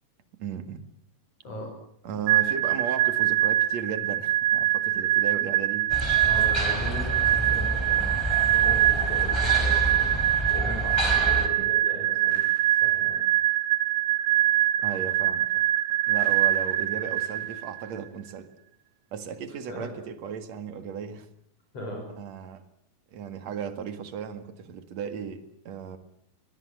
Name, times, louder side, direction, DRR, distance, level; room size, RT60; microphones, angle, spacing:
voice 1, 0.4-0.9 2.0-5.9 11.6-11.7 14.8-15.7 16.1-18.5 19.1-21.3 22.2-22.6 23.1-26.0, right 7 dB, 55° right, 3.0 m, -36 dB
sound 1, 2.3-17.9, right 14 dB, 85° right, 2.8 m, -24 dB
sound 2, 5.9-11.5, equal, 10° left, 3.0 m, -29 dB
voice 2, 6.2-8.2 8.5-10.1 10.5-12.4 12.8-13.2 14.8-15.0 19.7-19.9 21.7-22.0, left 1 dB, 45° left, 6.7 m, -37 dB
22.5 x 22.0 x 7.8 m
omnidirectional pair, 3.8 m